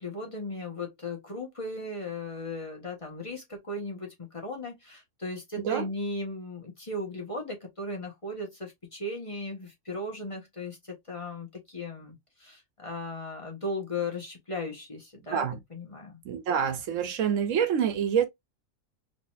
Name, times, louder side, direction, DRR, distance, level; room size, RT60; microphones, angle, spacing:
voice 1, 0.0-15.4 15.7-16.2, left 2 dB, 25° left, 1.4 m, -37 dB
voice 2, 5.6-5.9 15.3-15.6 16.2-18.2, right 8 dB, 75° right, 1.0 m, -27 dB
3.9 x 3.2 x 2.4 m
omnidirectional pair, 1.3 m